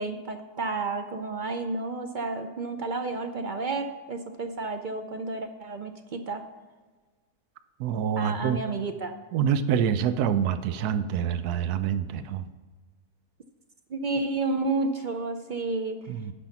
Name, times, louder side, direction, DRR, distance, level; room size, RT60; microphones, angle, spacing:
voice 1, 0.0-6.4 8.2-9.1 13.9-16.0, right 3 dB, 60° right, 7 dB, 0.5 m, -31 dB
voice 2, 7.8-8.6 9.3-12.5 16.1-16.3, right 8 dB, 80° right, 12 dB, 1.2 m, -26 dB
9.9 x 6.3 x 5.8 m, 1.3 s
omnidirectional pair, 1.6 m